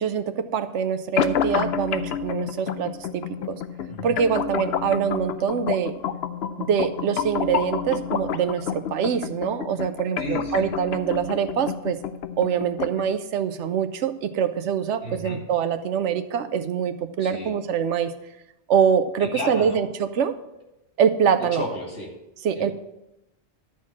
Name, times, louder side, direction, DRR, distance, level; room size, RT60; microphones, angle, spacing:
voice 1, 0.0-3.6 4.0-5.9 6.6-12.0 12.4-18.1 18.7-20.3 21.0-21.6 22.4-22.7, right 7 dB, 85° right, 11 dB, 1.0 m, -24 dB
sound 1, 1.2-13.2, left 7 dB, 70° left, 0.8 m, -29 dB
voice 2, 10.2-10.7 15.0-15.4 17.2-17.5 19.2-19.8 21.4-22.1 22.5-22.7, left 1 dB, 90° left, -1 dB, 2.7 m, -33 dB
12.0 x 4.3 x 7.3 m, 0.90 s
omnidirectional pair, 1.2 m